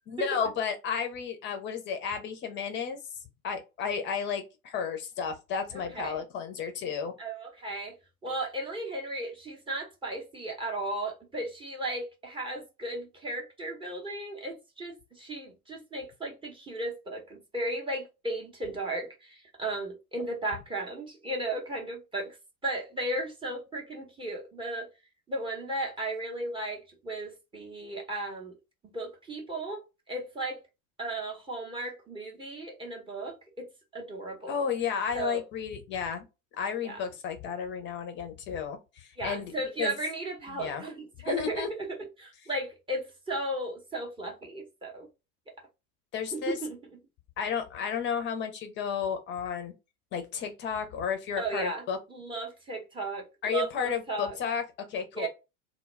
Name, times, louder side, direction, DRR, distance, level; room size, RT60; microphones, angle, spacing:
voice 1, 0.1-3.0 3.4-7.1 34.5-36.2 36.6-39.5 39.8-39.9 40.6-40.9 41.2-41.7 46.1-46.6 47.4-49.7 50.1-52.0 53.4-54.6 54.9-55.3, left 7 dB, 25° left, 0.6 m, -32 dB
voice 2, 5.7-6.2 7.2-8.0 8.2-22.4 22.6-24.9 25.3-28.5 28.8-29.8 30.1-30.6 31.0-33.7 33.9-34.6 35.1-35.4 36.8-37.0 39.2-41.9 42.2-45.1 46.3-46.8 51.4-51.8 52.1-54.4 55.1-55.3, right 2 dB, 10° right, 0.7 m, -35 dB
2.2 x 2.1 x 3.2 m
figure-of-eight pair, 90°, 44 cm